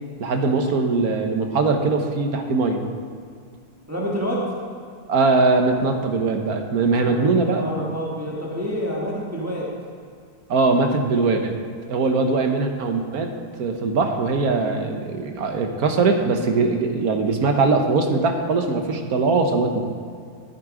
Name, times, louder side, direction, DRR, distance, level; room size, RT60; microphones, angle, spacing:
voice 1, 0.2-2.8 5.1-7.7 10.5-11.6 11.9-13.3 13.6-19.8, right 3 dB, 65° right, 5 dB, 1.5 m, -21 dB
voice 2, 3.9-4.5 7.0-9.7, equal, 10° right, -4 dB, 1.6 m, -28 dB
13.5 x 8.1 x 5.0 m, 2.2 s
omnidirectional pair, 1.8 m